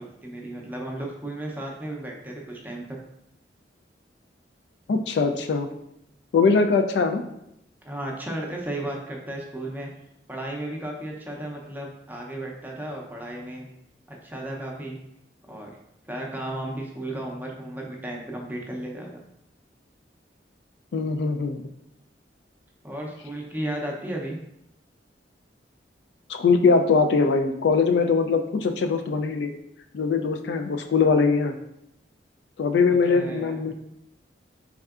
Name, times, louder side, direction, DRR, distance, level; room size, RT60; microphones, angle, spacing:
voice 1, 0.0-3.0 7.8-9.9 10.3-13.7 14.1-15.0 15.5-15.7 16.1-19.2 22.8-24.4 32.9-33.6, right 1 dB, 10° right, -1 dB, 0.5 m, -34 dB
voice 2, 4.9-5.7 6.3-7.2 20.9-21.6 26.3-29.6 29.9-31.6 32.6-33.7, left 4 dB, 70° left, 6 dB, 0.3 m, -21 dB
4.3 x 3.5 x 2.4 m, 0.80 s
head